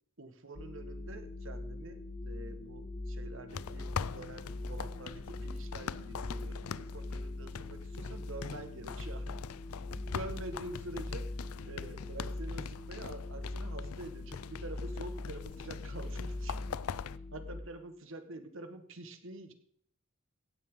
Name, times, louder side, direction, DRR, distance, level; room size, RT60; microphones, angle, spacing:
voice 1, 0.2-9.4 9.8-11.3 11.6-16.6 17.3-19.5, right 2 dB, 60° right, 8 dB, 1.5 m, -46 dB
sound 1, 0.6-17.6, left 2 dB, 25° left, 0.8 m, -42 dB
sound 2, 3.5-17.2, left 7 dB, 90° left, 0.4 m, -43 dB
16.5 x 9.5 x 3.8 m, 0.64 s
head